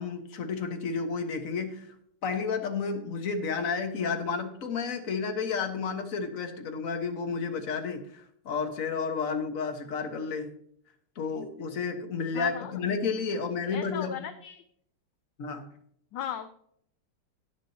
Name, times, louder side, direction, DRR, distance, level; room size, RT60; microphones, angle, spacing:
voice 1, 0.0-1.9 2.2-10.5 11.2-14.1 15.4-15.7, left 5 dB, 45° left, 5 dB, 1.5 m, -31 dB
voice 2, 12.3-12.8 13.6-14.6 16.1-16.5, left 10 dB, 70° left, 10 dB, 1.2 m, -37 dB
19.5 x 7.4 x 2.8 m, 0.68 s
omnidirectional pair, 2.4 m